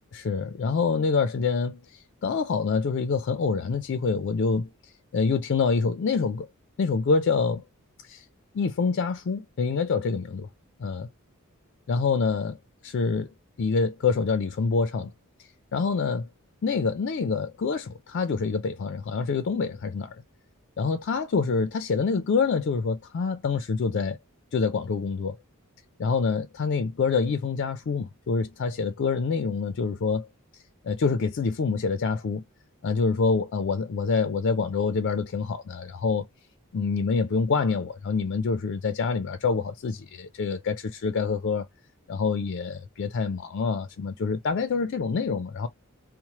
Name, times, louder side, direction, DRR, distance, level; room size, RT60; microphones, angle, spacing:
voice 1, 0.1-1.8 2.2-4.7 5.1-6.5 6.8-7.6 8.1-8.2 8.5-10.5 10.8-11.1 11.9-12.6 12.8-13.3 13.6-15.1 15.7-16.3 16.6-20.2 20.8-24.2 24.5-25.4 26.0-30.3 30.8-32.4 32.8-36.3 36.7-41.7 42.1-45.7, left 4 dB, 55° left, 0.4 m, -26 dB
3.0 x 2.0 x 2.8 m
head